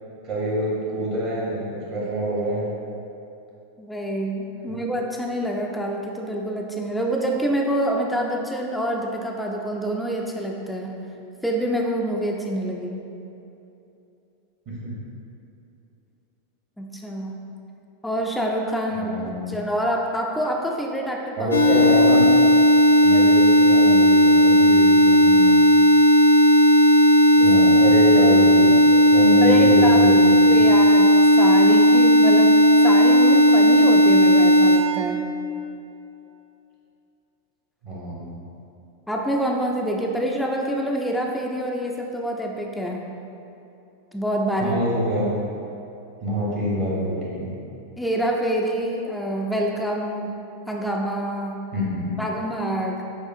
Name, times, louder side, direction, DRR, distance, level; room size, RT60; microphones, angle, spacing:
voice 1, 0.2-2.6 14.7-14.9 18.9-19.6 21.4-22.3 23.0-25.5 27.4-28.7 29.1-30.4 37.8-38.3 44.6-45.3 46.2-47.5 51.7-52.2, equal, 45° right, -6 dB, 1.0 m, -26 dB
voice 2, 3.8-11.0 11.4-13.0 16.8-17.4 18.0-21.5 23.1-23.2 27.4-27.5 29.4-30.2 30.5-32.6 32.8-35.2 39.1-43.0 44.1-44.8 48.0-50.4 50.7-51.7 52.2-53.0, right 1 dB, 5° left, 0 dB, 0.3 m, -26 dB
sound 1, 21.5-34.8, equal, 75° left, 0.4 m, -14 dB
6.5 x 2.4 x 2.6 m, 2.8 s
figure-of-eight pair, 90°, 0 cm